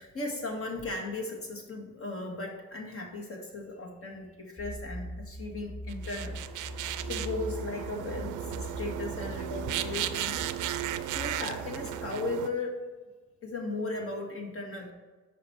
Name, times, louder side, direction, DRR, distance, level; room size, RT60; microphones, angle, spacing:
voice 1, 0.0-6.4 7.0-10.5 11.0-12.8 13.4-14.9, left 2 dB, 50° left, 1 dB, 1.9 m, -36 dB
sound 1, 4.6-12.1, equal, 5° left, 0.5 m, -41 dB
sound 2, 5.9-12.5, right 12 dB, 80° right, 0.5 m, -35 dB
7.5 x 5.3 x 4.6 m, 1.3 s
cardioid pair, 90°, 30 cm